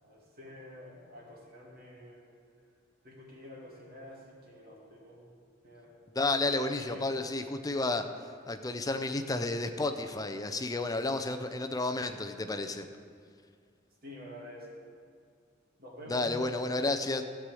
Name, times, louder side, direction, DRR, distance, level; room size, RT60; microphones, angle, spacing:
voice 1, 0.0-2.2 3.0-5.3 5.6-5.9 6.3-7.1 14.0-14.8 15.8-16.3, left 1 dB, 50° right, -3 dB, 2.5 m, -48 dB
voice 2, 6.1-8.0 8.5-12.9 16.1-17.2, left 2 dB, 20° left, 8 dB, 0.5 m, -31 dB
13.5 x 4.9 x 7.6 m, 2.2 s
head